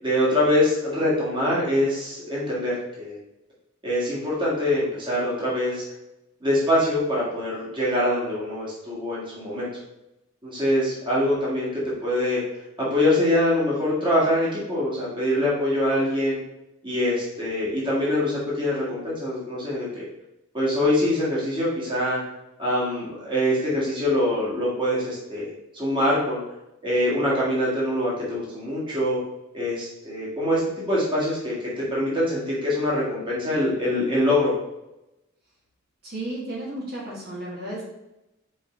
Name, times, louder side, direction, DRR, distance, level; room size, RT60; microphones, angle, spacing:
voice 1, 0.0-3.2 3.8-5.8 6.4-9.7 10.4-12.4 12.8-16.4 16.8-20.0 20.5-22.2 22.6-25.5 25.7-26.4 26.8-29.2 29.5-30.6 30.9-34.5, left 1 dB, 25° right, -7 dB, 1.9 m, -24 dB
voice 2, 36.0-37.8, right 1 dB, 50° right, -6 dB, 2.0 m, -33 dB
5.3 x 4.7 x 3.8 m, 0.92 s
head